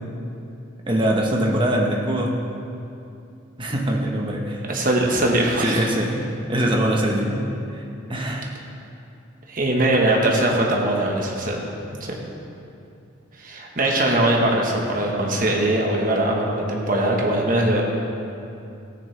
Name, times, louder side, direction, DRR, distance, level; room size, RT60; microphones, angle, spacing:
voice 1, 0.9-2.4 3.6-4.6 5.6-6.2 6.5-7.5 8.1-8.5, right 1 dB, 25° right, -1 dB, 1.1 m, -22 dB
voice 2, 4.7-5.9 9.5-11.6 12.0-12.1 13.4-17.8, right 1 dB, 45° right, -1 dB, 1.3 m, -21 dB
14.5 x 9.5 x 3.4 m, 2.7 s
head